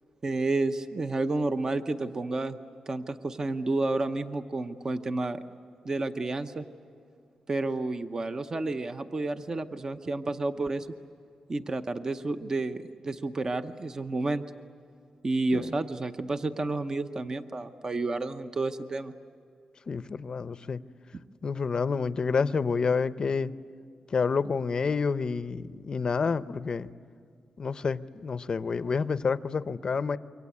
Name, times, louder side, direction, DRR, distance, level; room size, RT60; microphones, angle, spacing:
voice 1, 0.2-2.6 2.9-5.4 5.8-6.6 7.5-10.9 11.5-14.4 15.2-19.1, right 2 dB, 30° right, 8 dB, 0.8 m, -30 dB
voice 2, 19.9-20.8 21.4-23.5 24.1-26.9 27.6-30.2, left 5 dB, 40° left, 14 dB, 0.6 m, -28 dB
27.0 x 24.0 x 8.5 m, 2.4 s
wide cardioid pair, 135°, 2 cm